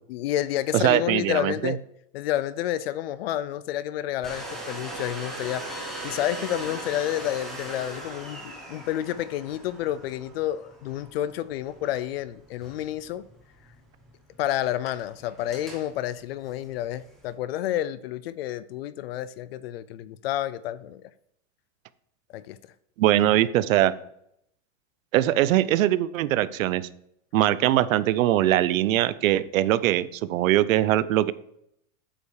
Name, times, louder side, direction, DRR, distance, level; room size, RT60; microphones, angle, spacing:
voice 1, 0.1-1.8 2.1-13.2 14.4-21.0 22.3-22.6, left 12 dB, 50° left, 0.4 m, -30 dB
voice 2, 0.7-1.7 23.0-23.9 25.1-26.9 27.3-31.3, right 13 dB, 90° right, 0.6 m, -22 dB
Domestic sounds home sounds, 4.2-17.3, right 1 dB, ahead, 1.1 m, -41 dB
8.4 x 5.5 x 4.8 m
supercardioid pair, 175°, 39 cm